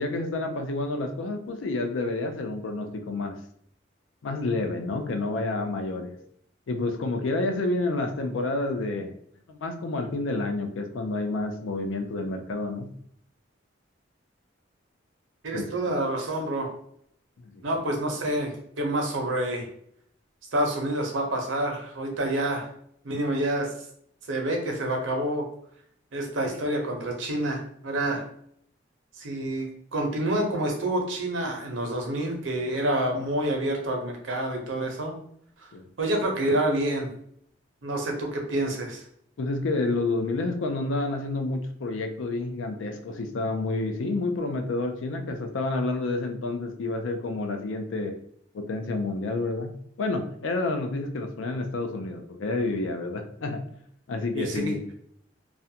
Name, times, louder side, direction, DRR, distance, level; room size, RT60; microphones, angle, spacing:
voice 1, 0.0-3.4 4.2-6.1 6.7-9.1 9.5-12.9 15.5-15.7 17.4-17.5 35.7-35.9 39.4-48.2 48.5-53.7 54.1-54.8, left 2 dB, 85° left, 5 dB, 0.4 m, -29 dB
voice 2, 15.4-16.7 17.6-19.7 20.5-22.7 23.0-23.7 24.3-25.4 26.1-28.2 29.2-35.1 35.6-35.7 36.0-37.1 37.8-39.0 54.3-54.7, right 1 dB, 80° right, 2 dB, 0.6 m, -28 dB
2.4 x 2.1 x 2.7 m, 0.67 s
head